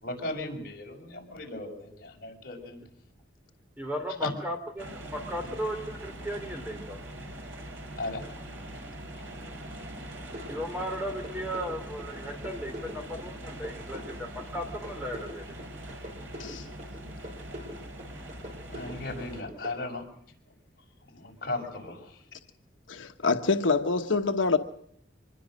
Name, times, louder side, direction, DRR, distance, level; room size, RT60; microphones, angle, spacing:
voice 1, 0.0-2.8 4.2-4.3 8.0-8.7 9.2-9.3 18.7-20.0 21.1-22.2, left 2 dB, 50° left, 6.0 m, -37 dB
voice 2, 3.8-7.0 10.5-15.6, equal, 10° right, 3.3 m, -36 dB
sound 1, 4.8-19.4, right 1 dB, 85° right, 5.6 m, -42 dB
sound 2, 10.3-19.7, left 1 dB, 40° right, 5.3 m, -43 dB
voice 3, 22.9-24.6, left 4 dB, 90° left, 1.2 m, -26 dB
25.0 x 21.5 x 6.4 m
head